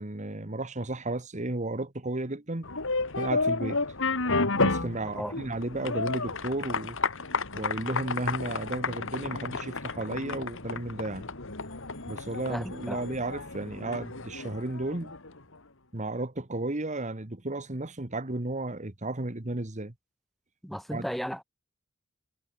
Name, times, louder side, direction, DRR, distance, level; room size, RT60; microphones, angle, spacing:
voice 1, 0.0-2.7 3.2-3.8 4.5-7.0 7.5-11.3 12.1-15.1 15.9-19.9 20.9-21.1, right 2 dB, 35° right, 1.6 m, -33 dB
sound 1, 2.6-15.4, left 3 dB, 60° left, 3.3 m, -32 dB
voice 2, 12.5-13.0 20.6-21.4, equal, ahead, 1.9 m, -34 dB
head